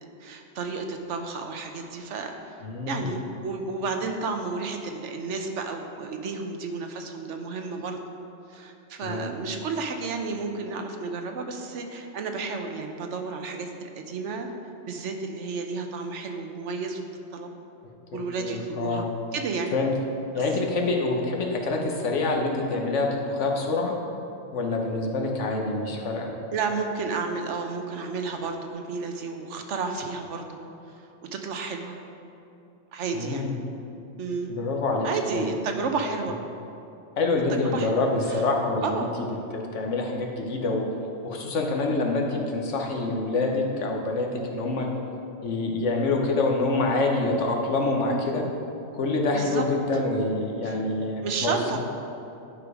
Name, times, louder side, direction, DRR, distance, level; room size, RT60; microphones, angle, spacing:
voice 1, 0.2-8.0 8.5-14.5 14.9-17.0 17.3-17.5 18.1-19.7 20.4-20.5 26.5-30.6 30.9-31.0 31.3-32.0 32.9-33.5 34.2-34.5 35.0-36.4 37.5-38.4 38.8-39.1 49.3-49.6 49.9-50.0 50.6-50.8 51.2-51.8, right 4 dB, 80° right, 4 dB, 1.1 m, -32 dB
voice 2, 2.6-3.1 9.0-9.3 18.4-19.1 19.7-19.9 20.3-23.9 24.5-26.3 33.1-33.5 34.5-35.1 35.3-35.6 37.2-39.1 39.5-40.8 41.2-44.9 45.4-48.4 48.9-51.8, left 3 dB, 85° left, 1 dB, 1.3 m, -26 dB
10.5 x 4.8 x 4.9 m, 2.8 s
omnidirectional pair, 1.2 m